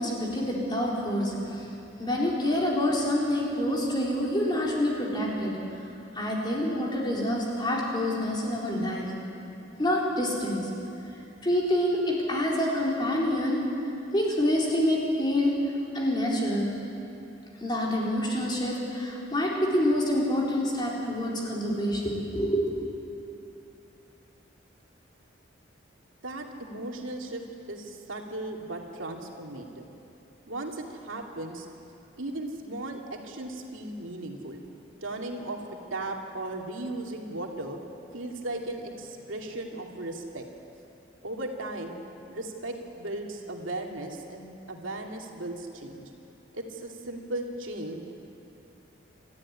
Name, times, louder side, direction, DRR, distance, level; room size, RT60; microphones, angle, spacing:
voice 1, 0.0-1.7 2.0-5.5 6.1-9.1 9.8-10.6 11.4-13.6 14.1-15.5 15.9-16.7 17.6-22.7, left 1 dB, 20° left, -4 dB, 4.3 m, -27 dB
voice 2, 26.2-27.4 27.7-29.9 30.5-31.7 32.2-34.6 35.0-37.8 38.1-40.4 41.2-42.0 42.3-46.1 46.5-48.0, right 2 dB, 90° right, 1 dB, 2.6 m, -36 dB
27.5 x 14.0 x 9.9 m, 2.8 s
head